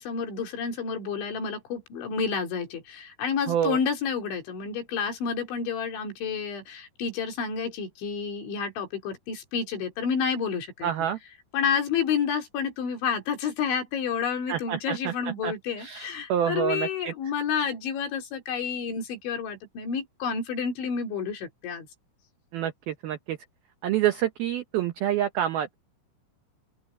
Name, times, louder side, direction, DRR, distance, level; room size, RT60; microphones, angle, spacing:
voice 1, 0.0-10.9 11.5-21.9, left 6 dB, 65° left, 5.5 m, -30 dB
voice 2, 3.5-3.8 10.8-11.2 14.5-15.1 15.4-15.5 15.8-17.1 22.5-23.4 23.8-25.7, right 10 dB, 80° right, 2.2 m, -27 dB
open air
omnidirectional pair, 5.9 m